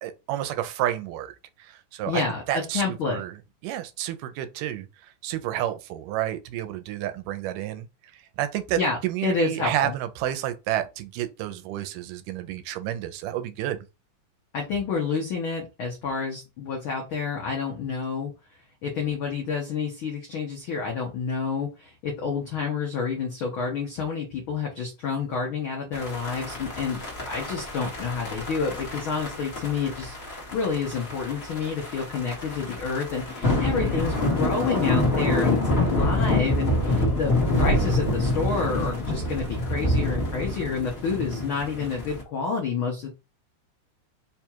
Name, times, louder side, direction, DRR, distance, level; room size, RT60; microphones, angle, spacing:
voice 1, 0.0-1.3 1.7-2.2 2.5-3.3 3.6-4.9 5.2-7.9 8.4-13.8, right 12 dB, 85° right, 2.2 m, -30 dB
voice 2, 2.1-3.2 8.7-10.0 14.5-18.3 18.8-27.0 27.3-43.1, left 5 dB, 90° left, 1.1 m, -29 dB
sound 1, 25.9-42.2, left 1 dB, 40° left, 0.9 m, -27 dB
5.1 x 2.3 x 4.4 m
omnidirectional pair, 3.8 m